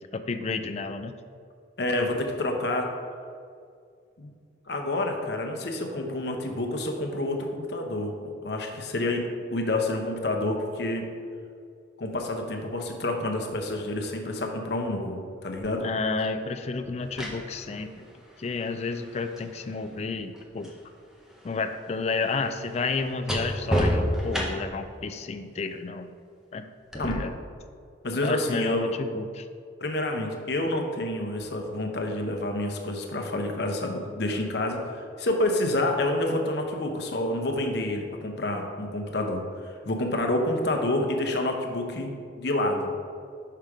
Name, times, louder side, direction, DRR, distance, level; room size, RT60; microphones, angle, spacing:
voice 1, 0.1-1.1 15.8-18.0 18.4-20.7 21.4-26.1 26.5-26.7 26.9-27.3 28.2-29.4, left 4 dB, 35° left, 8 dB, 0.3 m, -31 dB
voice 2, 1.8-2.9 4.2-4.3 4.7-11.1 12.0-15.9 27.0-27.2 28.0-29.0 29.8-42.9, left 1 dB, 55° left, 3 dB, 0.8 m, -28 dB
sound 1, 15.6-15.7 16.8-20.8 21.1-24.9 26.9-27.1, equal, 5° right, 0.7 m, -31 dB
5.7 x 5.1 x 4.8 m, 2.3 s
head